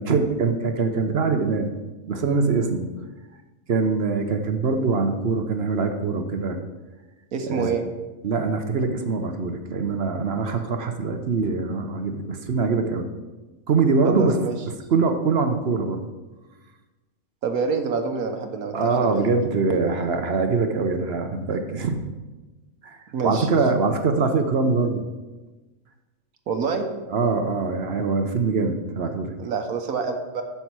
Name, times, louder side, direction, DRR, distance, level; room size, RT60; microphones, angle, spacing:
voice 1, 0.0-1.7 2.1-2.9 3.7-6.6 7.5-7.8 8.2-13.1 13.7-14.4 14.7-16.1 18.7-22.0 22.8-23.0 23.2-25.0 27.1-29.3, right 4 dB, 55° right, 6 dB, 0.9 m, -23 dB
voice 2, 7.3-7.8 14.0-14.6 17.4-19.2 23.1-23.5 26.5-26.9 29.4-30.4, right 5 dB, 80° right, 5 dB, 1.4 m, -27 dB
9.9 x 7.1 x 4.6 m, 1.2 s
omnidirectional pair, 1.5 m